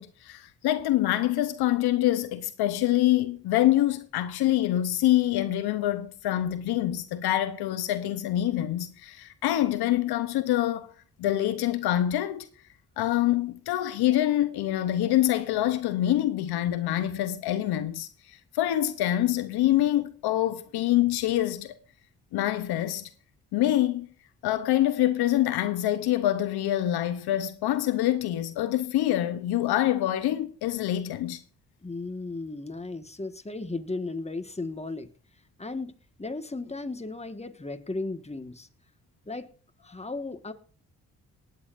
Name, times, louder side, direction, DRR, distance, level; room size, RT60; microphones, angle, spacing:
voice 1, 0.0-10.9 11.2-12.5 13.0-21.7 22.3-23.1 23.5-24.1 24.4-31.4, left 13 dB, 85° left, 0.9 m, -25 dB
voice 2, 31.8-35.1 35.6-35.9 36.2-38.7 39.2-39.5 39.8-40.5, left 3 dB, 15° left, 1.6 m, -35 dB
19.0 x 9.2 x 2.6 m
supercardioid pair, 50°, 38 cm